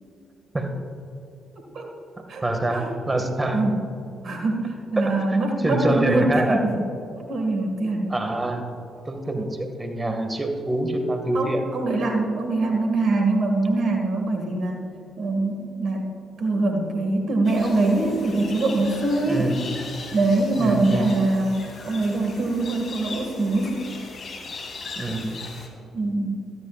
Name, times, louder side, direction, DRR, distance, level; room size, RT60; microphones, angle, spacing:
voice 1, 1.6-1.9 2.3-2.4 2.7-2.9 3.5-3.8 4.2-6.8 7.2-8.1 11.3-14.8 15.2-16.1 16.4-19.5 20.1-23.8 25.9-26.3, right 2 dB, 60° right, 2 dB, 2.0 m, -23 dB
voice 2, 2.4-3.6 5.0-6.6 8.1-8.7 9.1-11.6 19.2-19.7 20.6-21.1 25.0-25.5, right 1 dB, 25° right, 5 dB, 1.9 m, -25 dB
sound 1, 17.4-25.7, left 4 dB, 55° left, 2.3 m, -39 dB
17.0 x 13.0 x 2.5 m, 2.7 s
hypercardioid pair, 45°, 0 cm